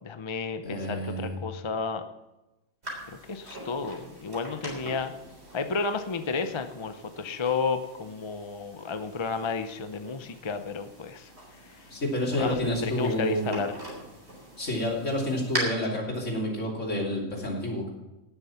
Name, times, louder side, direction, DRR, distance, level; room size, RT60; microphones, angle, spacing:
voice 1, 0.0-2.1 3.3-5.1 5.5-11.3 11.6-11.9 12.3-13.8, left 4 dB, 35° left, 8 dB, 0.5 m, -32 dB
voice 2, 0.6-1.4 11.9-13.6 14.6-17.9, left 1 dB, 55° left, -1 dB, 3.2 m, -29 dB
sound 1, 2.8-15.6, right 1 dB, 45° right, 4.0 m, -42 dB
17.5 x 7.1 x 5.7 m, 1.0 s
omnidirectional pair, 1.5 m